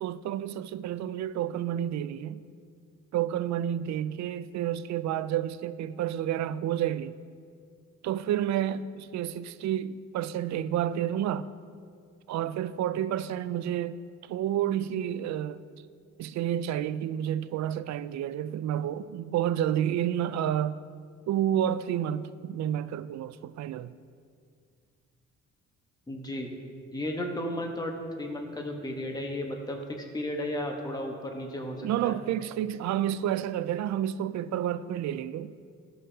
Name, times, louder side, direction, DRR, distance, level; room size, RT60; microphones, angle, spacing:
voice 1, 0.0-2.4 3.1-7.2 8.0-11.5 12.3-14.0 14.3-15.6 16.2-20.8 21.3-23.9 31.8-35.6, right 11 dB, 65° right, 0.4 m, -30 dB
voice 2, 26.1-26.5 26.9-32.2, left 1 dB, 15° left, 1.1 m, -34 dB
16.0 x 5.5 x 2.8 m
cardioid pair, 90°, 30 cm